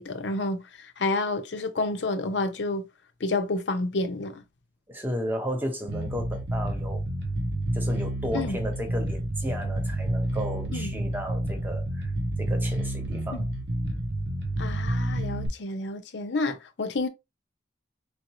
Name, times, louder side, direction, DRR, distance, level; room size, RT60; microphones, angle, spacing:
voice 1, 0.0-2.9 3.2-4.4 8.3-8.6 10.7-10.9 13.3-13.5 14.6-17.1, left 2 dB, 75° left, 0.7 m, -29 dB
voice 2, 4.9-7.0 7.7-12.1 12.4-13.4, equal, 10° right, 1.0 m, -34 dB
Bass guitar, 5.9-15.5, right 1 dB, 70° right, 0.8 m, -29 dB
4.6 x 2.5 x 3.0 m
head